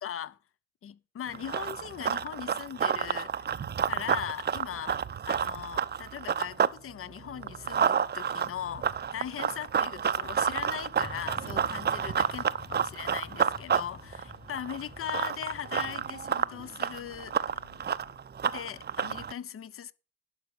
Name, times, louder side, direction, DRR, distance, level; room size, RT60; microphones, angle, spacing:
voice 1, 0.0-0.4 0.8-3.5 3.8-5.0 5.3-12.4 12.7-17.4 18.5-19.9, left 10 dB, 40° left, 0.8 m, -39 dB
Run, 1.3-6.8 7.1-19.3, right 7 dB, 30° right, 0.6 m, -30 dB
Motorcycle / Traffic noise roadway noise, 11.0-16.2, left 5 dB, 15° left, 0.7 m, -48 dB
sound 1, 11.7-18.2, left 5 dB, 85° left, 3.1 m, -59 dB
12.0 x 4.9 x 8.4 m
supercardioid pair, 65°, 33 cm